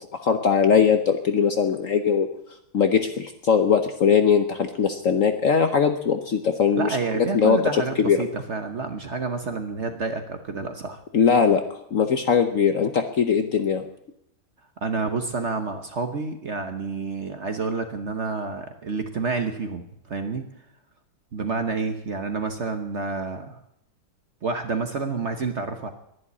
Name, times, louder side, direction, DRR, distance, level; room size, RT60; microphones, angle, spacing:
voice 1, 0.1-2.3 2.7-7.6 8.0-8.2 11.1-13.8, left 6 dB, 55° left, 7 dB, 1.0 m, -20 dB
voice 2, 6.7-11.0 14.8-20.4 21.3-23.6 24.4-25.9, right 4 dB, 45° right, 6 dB, 1.1 m, -29 dB
11.0 x 11.0 x 9.7 m, 0.79 s
omnidirectional pair, 2.1 m